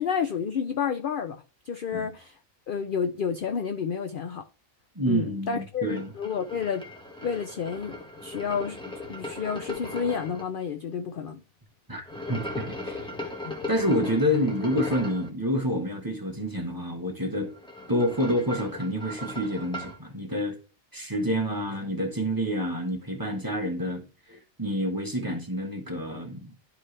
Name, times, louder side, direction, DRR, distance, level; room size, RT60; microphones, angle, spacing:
voice 1, 0.0-2.4 2.7-4.5 5.1-6.8 7.2-8.8 9.1-11.4 13.5-13.7, left 6 dB, 60° left, 0.5 m, -30 dB
voice 2, 4.9-6.1 11.9-13.0 13.7-17.5 17.9-20.5 20.9-26.5, equal, 15° right, 1.3 m, -28 dB
sound 1, 5.9-10.4 12.0-15.3 17.4-20.0, left 1 dB, 5° left, 1.4 m, -38 dB
11.5 x 4.3 x 3.3 m
omnidirectional pair, 1.4 m